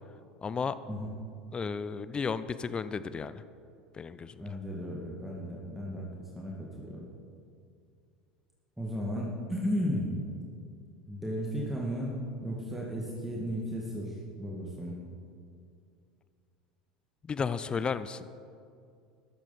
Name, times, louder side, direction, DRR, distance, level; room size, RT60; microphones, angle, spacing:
voice 1, 0.4-0.8 1.5-3.4 3.9-4.6 17.2-18.3, left 5 dB, 25° left, 14 dB, 0.5 m, -33 dB
voice 2, 4.4-6.1 6.4-7.1 8.8-10.1 11.1-15.0, equal, 5° right, -4 dB, 2.1 m, -34 dB
14.0 x 13.0 x 4.2 m, 2.4 s
figure-of-eight pair, 75°, 4 cm